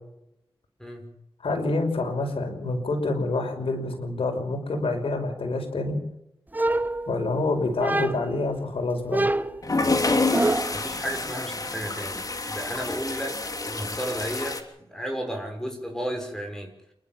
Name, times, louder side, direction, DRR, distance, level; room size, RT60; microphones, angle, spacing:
voice 1, 0.8-1.1 10.7-16.7, equal, 5° left, 3 dB, 6.0 m, -33 dB
voice 2, 1.4-6.0 7.1-9.3, left 2 dB, 75° left, 4 dB, 5.6 m, -27 dB
sound 1, 6.5-7.4 7.8-8.4 9.1-10.9, right 2 dB, 20° right, 1.1 m, -26 dB
sound 2, 9.6-14.6, left 3 dB, 40° left, 3.1 m, -28 dB
29.0 x 12.0 x 7.5 m, 0.83 s
cardioid pair, 65°, 9 cm